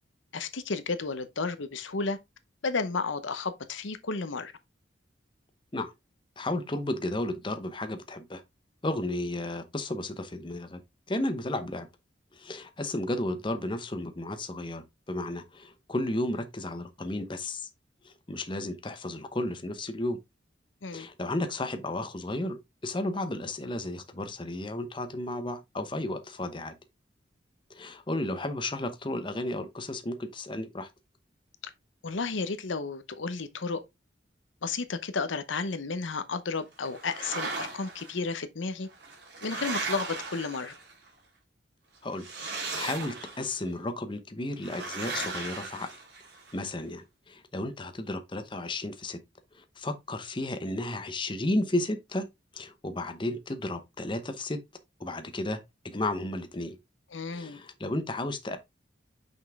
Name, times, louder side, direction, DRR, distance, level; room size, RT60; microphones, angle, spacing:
voice 1, 0.3-2.2 2.6-4.5 20.8-21.1 32.0-33.8 34.6-38.9 39.4-40.7 57.1-57.6, left 4 dB, 80° left, 0.8 m, -32 dB
voice 2, 6.4-8.4 8.8-10.8 11.1-11.9 12.3-17.7 18.0-20.2 20.9-22.6 22.8-26.7 27.7-30.9 42.0-42.3 42.7-45.9 46.5-49.2 49.5-52.3 52.5-54.6 55.0-56.8 57.3-58.6, left 1 dB, 25° left, 0.8 m, -33 dB
sound 1, 36.9-38.1 38.9-41.1 42.1-43.6 44.6-46.5, right 3 dB, 60° right, 2.8 m, -37 dB
6.0 x 5.4 x 3.5 m
head